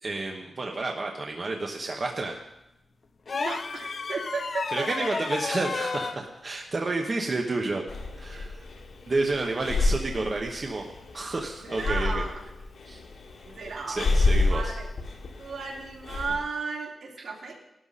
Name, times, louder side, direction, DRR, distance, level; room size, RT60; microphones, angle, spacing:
voice 1, 0.0-2.4 4.7-7.8 8.2-8.6 9.1-10.8 11.1-12.2 12.9-13.0 13.9-14.8, right 3 dB, 35° right, 1 dB, 1.1 m, -30 dB
sound 1, 3.3-6.2 7.9-8.1, left 4 dB, 50° left, 0.7 m, -32 dB
voice 2, 3.3-5.1 8.3-8.5 11.6-12.4 13.4-14.1 14.5-14.9 15.4-17.5, right 4 dB, 75° right, -2 dB, 3.1 m, -34 dB
Breathing, 7.9-16.4, left 3 dB, 75° left, 2.1 m, -29 dB
18.5 x 12.5 x 4.2 m, 0.87 s
wide cardioid pair, 150°, 0 cm